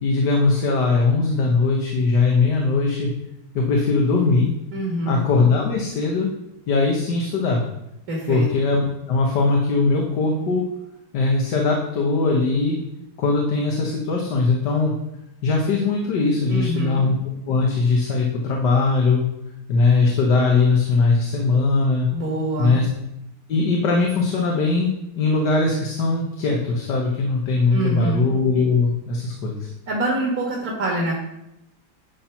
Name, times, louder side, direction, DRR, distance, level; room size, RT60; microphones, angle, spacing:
voice 1, 0.0-3.1 3.5-4.5 5.1-6.3 6.7-7.6 8.3-10.6 11.1-12.8 13.2-14.9 15.4-19.2 19.7-22.1 22.6-22.9 23.5-29.7, left 3 dB, 85° left, 0 dB, 1.8 m, -20 dB
voice 2, 4.7-5.2 8.1-8.5 16.5-17.1 22.1-22.8 27.7-28.2 29.9-31.2, right 2 dB, 60° right, -3 dB, 2.0 m, -25 dB
10.5 x 4.4 x 5.8 m, 0.87 s
omnidirectional pair, 1.8 m